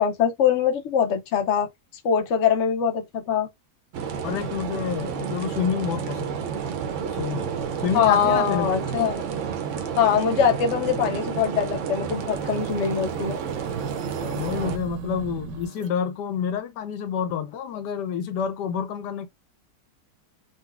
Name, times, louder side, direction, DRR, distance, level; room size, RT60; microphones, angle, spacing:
voice 1, 0.0-1.7 2.0-3.5 7.9-9.2 10.0-13.4, left 7 dB, 55° left, 0.8 m, -22 dB
sound 1, 3.9-14.8, right 7 dB, 70° right, 0.7 m, -30 dB
voice 2, 4.2-6.5 7.1-7.5 7.8-8.9 14.2-19.3, left 7 dB, 80° left, 1.1 m, -28 dB
sound 2, 12.2-15.9, right 6 dB, 85° right, 1.2 m, -39 dB
3.9 x 2.1 x 2.3 m
omnidirectional pair, 1.8 m